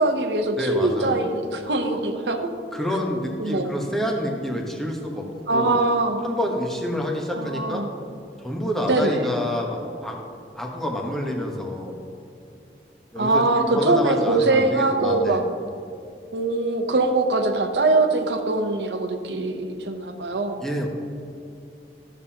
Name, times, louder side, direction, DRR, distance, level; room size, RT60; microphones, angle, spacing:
voice 1, 0.0-2.5 3.4-3.7 5.5-6.2 7.3-7.9 8.9-9.3 13.2-15.4 16.3-20.6, right 2 dB, 75° right, 5 dB, 0.8 m, -22 dB
voice 2, 0.6-1.2 2.7-5.3 5.5-5.7 6.2-7.8 8.4-10.2 10.5-12.0 13.1-15.4 20.6-20.9, left 1 dB, ahead, -1 dB, 1.0 m, -28 dB
13.0 x 7.2 x 2.9 m, 2.5 s
head